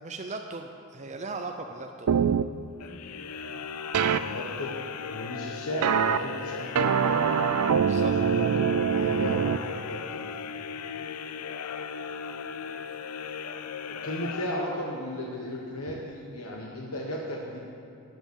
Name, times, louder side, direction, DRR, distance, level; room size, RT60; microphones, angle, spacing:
voice 1, 0.0-2.1 7.1-7.2 7.8-8.2, right 3 dB, 30° right, 4 dB, 0.6 m, -38 dB
sound 1, 2.1-2.4 3.9-4.2 5.8-6.2 6.7-9.6, right 7 dB, 85° right, 0.4 m, -23 dB
sound 2, 2.8-15.1, left 6 dB, 85° left, 0.5 m, -37 dB
voice 2, 4.0-4.8 5.0-7.2 8.3-10.2 13.8-17.6, left 1 dB, 70° left, -2 dB, 1.3 m, -35 dB
11.0 x 9.5 x 7.1 m, 2.7 s
head